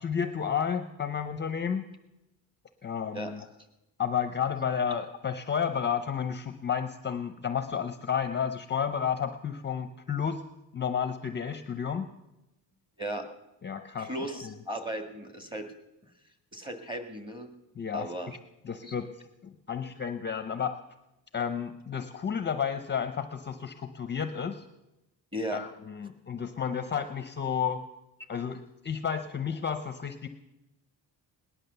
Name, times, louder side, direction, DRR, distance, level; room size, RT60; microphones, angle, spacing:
voice 1, 0.0-1.8 2.8-3.4 4.0-10.4 10.7-12.1 13.2-13.3 13.6-14.1 14.4-14.5 17.8-18.1 18.6-19.1 19.4-20.8 21.3-24.6 25.5-27.8 28.3-30.3, left 7 dB, 25° left, 8 dB, 0.6 m, -31 dB
voice 2, 3.1-3.5 13.0-13.2 14.0-15.7 16.5-17.5 17.9-18.4 18.8-18.9 25.3-25.6, right 1 dB, 10° right, 6 dB, 1.7 m, -36 dB
18.5 x 10.5 x 6.8 m, 0.95 s
cardioid pair, 155°, 40 cm